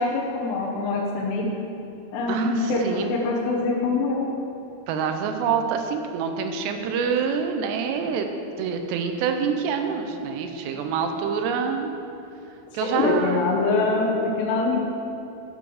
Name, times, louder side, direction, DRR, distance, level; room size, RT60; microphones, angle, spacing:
voice 1, 0.0-1.5 2.1-4.3 12.8-14.8, left 3 dB, 85° left, -3 dB, 3.2 m, -24 dB
voice 2, 2.3-3.1 4.9-8.3 8.6-11.9 12.7-13.5, right 6 dB, 90° right, 6 dB, 2.9 m, -26 dB
11.5 x 7.8 x 4.9 m, 2.8 s
omnidirectional pair, 4.8 m